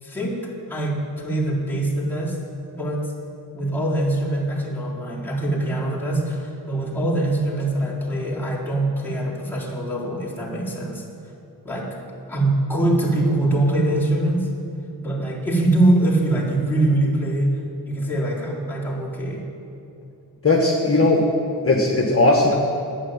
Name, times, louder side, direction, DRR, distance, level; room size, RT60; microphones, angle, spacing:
voice 1, 0.0-2.4 2.8-3.1 3.5-11.0 11.6-12.0 12.3-14.5 15.0-17.6 17.9-19.4, right 1 dB, 5° left, -6 dB, 4.2 m, -23 dB
voice 2, 20.4-21.3 21.6-22.5, left 2 dB, 35° left, -1 dB, 1.7 m, -17 dB
11.0 x 9.8 x 9.0 m, 2.8 s
cardioid pair, 65°, 40 cm